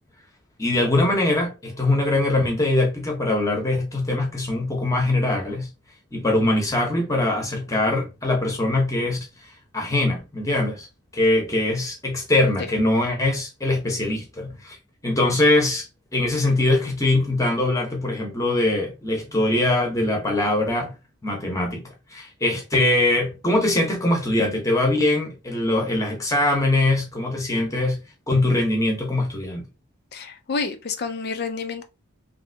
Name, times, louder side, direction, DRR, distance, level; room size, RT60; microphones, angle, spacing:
voice 1, 0.6-5.7 6.1-9.2 9.7-10.9 11.1-14.8 15.0-15.9 16.1-20.9 21.2-28.0 28.3-29.6, left 2 dB, 15° left, 0.9 m, -22 dB
voice 2, 30.1-31.8, left 4 dB, 45° left, 0.4 m, -29 dB
3.3 x 2.7 x 2.7 m
head